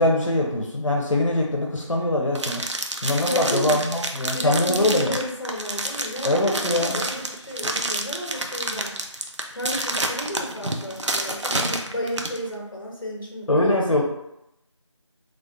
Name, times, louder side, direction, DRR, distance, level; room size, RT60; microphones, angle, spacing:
voice 1, 0.0-2.6 3.0-5.1 6.2-7.0 13.5-14.0, left 1 dB, 75° left, -1 dB, 0.7 m, -22 dB
sound 1, 2.3-12.4, right 2 dB, 65° right, 0.5 m, -28 dB
voice 2, 3.2-3.7 4.3-9.0 9.5-14.0, equal, 45° left, -1 dB, 0.9 m, -32 dB
3.3 x 2.4 x 2.6 m, 0.83 s
figure-of-eight pair, 175°, 16 cm